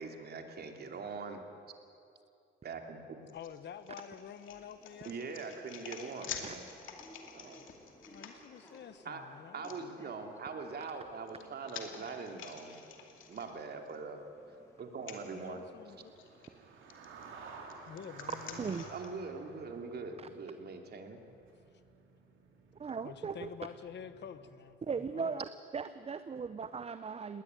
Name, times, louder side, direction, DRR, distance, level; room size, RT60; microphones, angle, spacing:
voice 1, 0.0-1.4 2.6-3.2 5.0-6.7 7.3-7.6 9.0-9.2 9.5-12.8 13.3-14.2 14.8-15.6 18.9-21.2, right 4 dB, 55° right, 4 dB, 2.8 m, -42 dB
sound 1, 3.3-8.8 9.6-9.8 10.9-14.0 14.3-14.4 15.0-15.2 16.2-16.5 16.9-19.1, left 7 dB, 85° left, 2.5 m, -48 dB
voice 2, 3.3-5.5 8.1-9.9 15.3-16.1 17.8-18.9 23.0-24.8 25.1-25.4, left 8 dB, 60° left, 12 dB, 1.3 m, -48 dB
sound 2, 4.3-16.6, equal, 15° left, 5.1 m, -60 dB
sound 3, 10.4-11.2 11.5-24.5, right 4 dB, 80° right, 3.2 m, -54 dB
voice 3, 22.8-23.5 24.8-25.4 25.7-27.4, right 5 dB, 30° right, 12 dB, 0.7 m, -38 dB
19.5 x 19.0 x 9.1 m, 2.6 s
cardioid pair, 90°, 20 cm